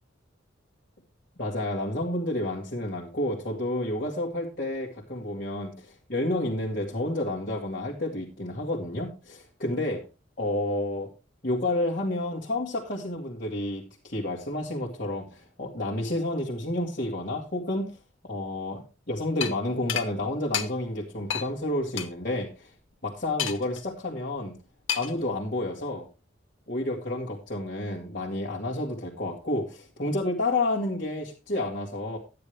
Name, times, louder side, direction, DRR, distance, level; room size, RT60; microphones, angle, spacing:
voice 1, 1.4-10.0 10.4-11.1 11.4-17.9 18.2-22.7 23.0-24.5 24.9-26.1 26.7-32.2, left 1 dB, 45° left, -5 dB, 2.1 m, -30 dB
sound 1, 19.4-19.5 19.9-20.1 20.5-20.7 21.3-21.5 22.0-22.1 23.4-23.8 24.9-25.2, left 8 dB, 85° left, 1.1 m, -29 dB
12.0 x 9.7 x 3.3 m, 0.29 s
head